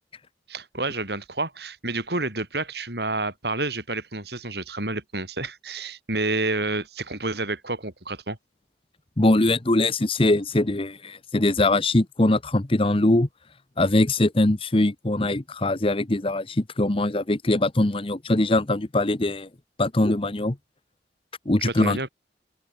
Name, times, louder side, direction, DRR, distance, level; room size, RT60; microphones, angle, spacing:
voice 1, 0.5-8.4 21.6-22.1, right 2 dB, 60° right, 6.4 m, -29 dB
voice 2, 9.2-13.3 13.8-19.5 19.8-20.6 21.5-22.0, left 2 dB, 30° left, 1.0 m, -22 dB
open air
head